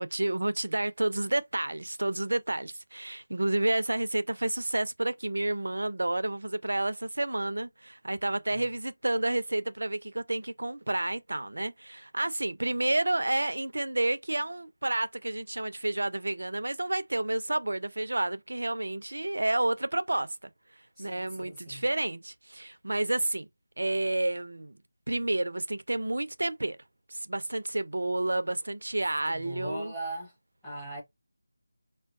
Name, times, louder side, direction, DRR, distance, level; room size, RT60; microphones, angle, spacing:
voice 1, 0.0-20.5 21.0-23.5 23.8-24.8 25.1-26.8 27.1-29.9, right 2 dB, 65° right, 0.4 m, -30 dB
voice 2, 21.0-21.8 29.3-30.3 30.6-31.0, right 1 dB, 5° left, 1.0 m, -39 dB
4.6 x 2.2 x 2.3 m
figure-of-eight pair, 165°, 0 cm